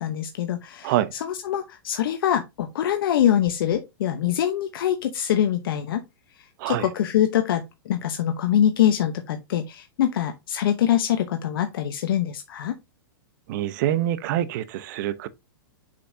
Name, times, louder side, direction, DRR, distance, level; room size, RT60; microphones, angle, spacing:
voice 1, 0.0-6.0 6.7-12.8, left 10 dB, 70° left, 0.9 m, -24 dB
voice 2, 13.5-15.3, right 12 dB, 55° right, 0.8 m, -25 dB
6.8 x 5.2 x 2.7 m
hypercardioid pair, 125°, 12 cm